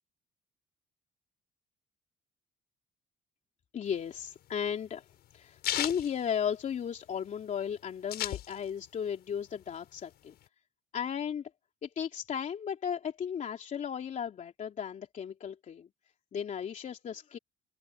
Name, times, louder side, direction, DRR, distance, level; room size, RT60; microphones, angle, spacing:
voice 1, 3.7-5.0 5.3-10.4 10.9-11.5 11.8-15.9 16.3-17.4, left 8 dB, 45° left, 3.2 m, -35 dB
sound 1, 3.9-7.1 7.4-7.5 7.7-9.0 9.3-10.4, left 13 dB, 70° left, 6.8 m, -36 dB
cardioid pair, 110°, 17 cm